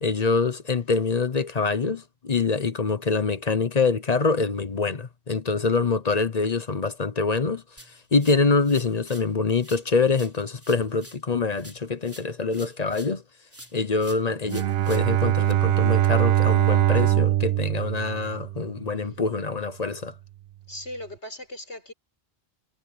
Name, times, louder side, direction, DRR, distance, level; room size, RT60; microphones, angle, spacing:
voice 1, 0.0-7.6 8.1-13.2 13.7-20.1, left 4 dB, 40° left, 0.9 m, -25 dB
sound 1, 7.8-9.3 9.6-13.2 13.5-15.5, equal, 10° right, 3.7 m, -48 dB
Bowed string instrument, 14.5-18.8, right 13 dB, 65° right, 0.8 m, -22 dB
voice 2, 20.7-21.9, left 1 dB, 80° left, 4.8 m, -38 dB
omnidirectional pair, 1.2 m